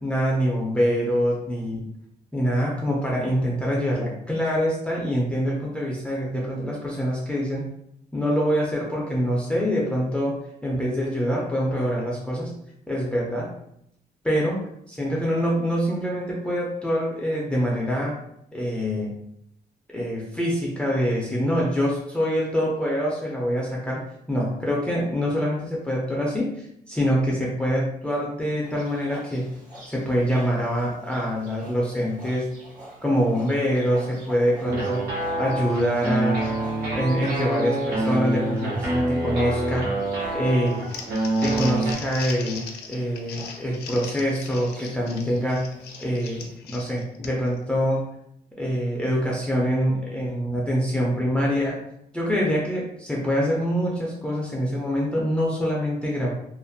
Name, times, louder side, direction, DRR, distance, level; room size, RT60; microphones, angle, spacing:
voice 1, 0.0-1.9 2.3-7.6 8.1-10.3 10.6-12.5 12.9-13.5 14.2-18.2 18.5-19.1 19.9-24.0 24.3-29.5 29.9-32.5 33.0-35.1 35.4-36.4 36.9-39.9 40.3-40.8 41.4-45.7 46.0-48.1 48.6-51.8 52.1-56.3, equal, 5° left, -4 dB, 0.3 m, -25 dB
Livestock farm animals working animals, 28.6-46.6, right 1 dB, 55° right, 1.0 m, -46 dB
sound 1, 34.6-41.9, right 2 dB, 75° right, 0.8 m, -26 dB
Crumpling crinkling, 40.7-47.6, left 5 dB, 85° left, 0.4 m, -39 dB
2.4 x 2.1 x 2.5 m, 0.76 s
cardioid pair, 155°, 16 cm